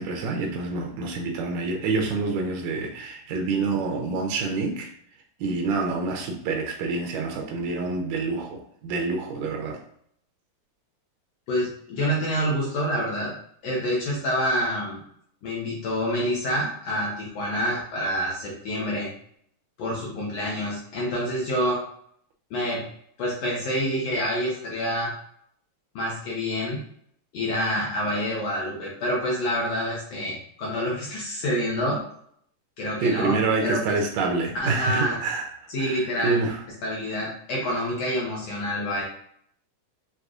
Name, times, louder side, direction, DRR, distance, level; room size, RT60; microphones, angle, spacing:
voice 1, 0.0-4.9 5.4-9.8 33.0-36.6, right 3 dB, 85° right, 2 dB, 1.6 m, -27 dB
voice 2, 11.5-13.3 13.6-15.0 15.4-19.1 19.8-21.8 22.5-22.8 23.2-25.1 25.9-26.8 27.3-32.0 32.8-34.0 34.5-35.2 35.7-36.4 36.8-39.0, equal, 70° left, -4 dB, 1.6 m, -27 dB
6.6 x 2.6 x 2.4 m, 0.66 s
omnidirectional pair, 4.0 m